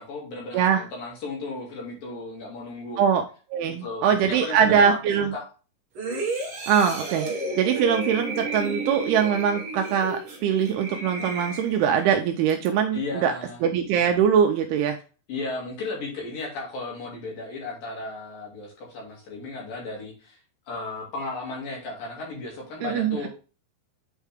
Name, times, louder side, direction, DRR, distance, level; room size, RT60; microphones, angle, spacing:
voice 1, 0.0-3.0 3.7-5.0 5.3-5.4 12.9-13.6 15.3-20.4 20.7-23.3, left 3 dB, 55° left, -2 dB, 3.8 m, -35 dB
voice 2, 0.5-0.9 3.0-3.2 3.5-5.3 6.7-7.3 7.6-13.3 13.6-15.0 22.8-23.3, right 8 dB, 80° right, 5 dB, 2.4 m, -22 dB
sound 1, 5.9-12.1 12.5-12.7, right 2 dB, 45° right, 1.8 m, -32 dB
8.2 x 4.6 x 3.4 m, 0.35 s
omnidirectional pair, 5.1 m